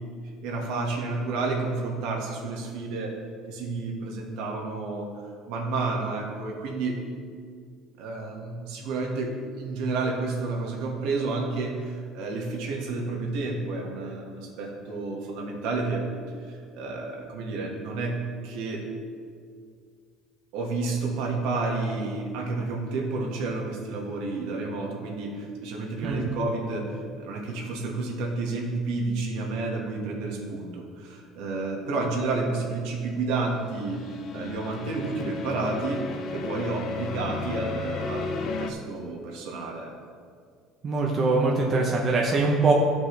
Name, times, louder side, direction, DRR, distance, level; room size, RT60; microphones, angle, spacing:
voice 1, 0.4-3.2 3.5-5.1 5.5-7.0 8.0-16.0 16.4-18.8 20.5-34.0 34.3-36.0 36.3-39.9, right 3 dB, 70° right, -1 dB, 1.7 m, -30 dB
sound 1, 33.6-38.7, left 4 dB, 40° left, 0.5 m, -34 dB
voice 2, 40.8-42.7, right 3 dB, 25° right, -2 dB, 0.8 m, -23 dB
14.0 x 5.1 x 3.3 m, 2.1 s
cardioid pair, 165°, 0 cm